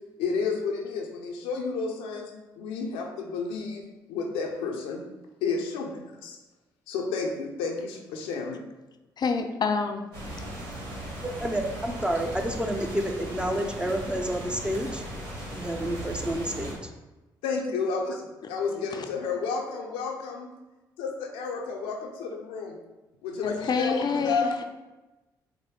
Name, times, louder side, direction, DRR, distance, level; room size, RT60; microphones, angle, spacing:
voice 1, 0.2-5.0 5.4-6.4 6.9-8.6 17.4-20.5 21.0-22.8 23.2-24.5, left 4 dB, 85° left, 1 dB, 0.7 m, -31 dB
voice 2, 9.2-10.0 18.9-19.1 23.4-24.6, left 5 dB, 50° left, 6 dB, 0.5 m, -27 dB
sound 1, 10.1-16.7, right 1 dB, 85° right, 1.2 m, -37 dB
voice 3, 11.4-15.2 15.5-16.8 18.7-18.8, right 1 dB, 10° right, 3 dB, 0.7 m, -29 dB
5.0 x 2.2 x 4.6 m, 1.1 s
supercardioid pair, 55°, 9 cm